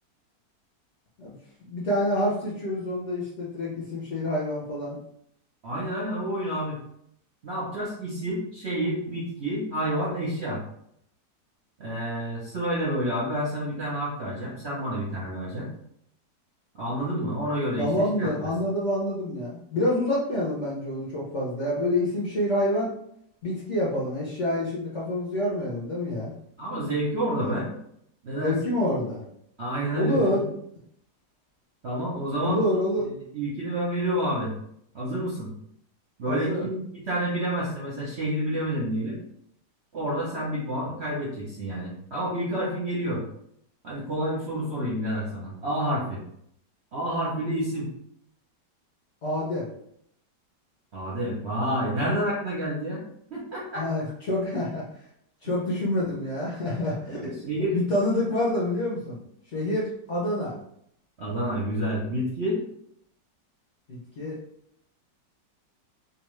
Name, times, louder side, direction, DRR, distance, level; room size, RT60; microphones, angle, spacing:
voice 1, 1.6-5.0 17.8-22.9 23.4-26.3 27.4-27.5 28.3-29.2 29.9-30.4 32.4-33.1 36.2-36.7 49.2-49.7 53.7-54.8 55.4-57.2 57.7-59.2 59.5-60.5 63.9-64.4, left 1 dB, 60° left, -6 dB, 0.8 m, -27 dB
voice 2, 5.6-6.8 7.4-10.6 11.8-15.7 16.8-18.3 26.6-27.7 28.2-28.7 29.6-30.4 31.8-32.6 33.0-34.5 34.9-35.5 36.2-39.2 39.9-43.2 43.8-46.2 46.9-47.9 50.9-53.0 53.3-53.9 55.4-55.6 57.1-57.8 61.2-62.6, right 1 dB, 55° right, -6 dB, 0.8 m, -29 dB
2.9 x 2.3 x 3.1 m, 0.71 s
omnidirectional pair, 1.9 m